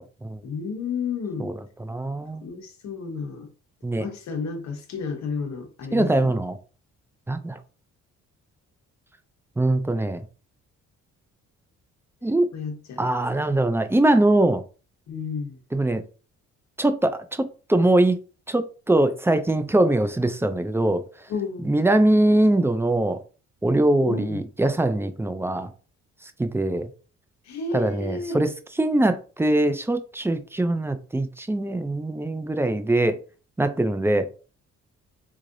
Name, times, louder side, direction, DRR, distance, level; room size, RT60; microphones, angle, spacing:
voice 1, 0.4-1.5 2.4-3.5 4.0-6.3 12.5-13.1 15.1-15.6 21.3-21.8 24.0-24.4 27.4-28.4, left 5 dB, 65° left, 1.0 m, -32 dB
voice 2, 1.8-2.4 3.8-4.1 5.9-6.6 7.3-7.6 9.6-10.2 12.2-12.5 13.0-14.6 15.7-16.0 16.8-18.2 18.5-21.0 21.6-23.2 23.6-25.7 26.4-26.9 27.7-28.5 28.8-33.2 33.6-34.3, right 1 dB, 10° right, 0.4 m, -22 dB
3.6 x 3.2 x 2.6 m
cardioid pair, 90°, 30 cm